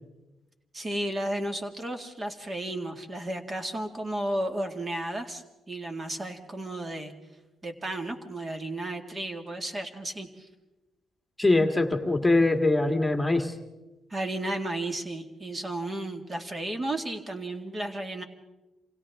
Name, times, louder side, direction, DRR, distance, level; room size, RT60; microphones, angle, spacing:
voice 1, 0.7-7.1 7.6-10.5 14.1-18.2, right 1 dB, 30° right, 5 dB, 2.2 m, -33 dB
voice 2, 11.4-13.6, left 2 dB, 10° left, 6 dB, 1.9 m, -23 dB
28.5 x 26.5 x 3.7 m, 1.1 s
cardioid pair, 90°, 0 cm